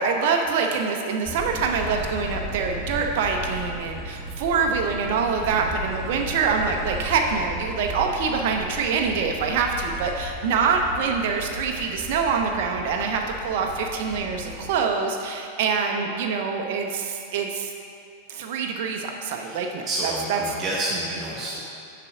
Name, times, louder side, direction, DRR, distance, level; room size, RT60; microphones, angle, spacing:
voice 1, 0.0-17.7 18.3-20.4, right 5 dB, 50° right, 2 dB, 0.6 m, -25 dB
sound 1, 1.2-14.8, equal, 5° right, 1.2 m, -36 dB
voice 2, 19.4-21.6, right 1 dB, 30° right, -4 dB, 0.9 m, -29 dB
6.7 x 5.7 x 4.9 m, 2.5 s
figure-of-eight pair, 90°, 0 cm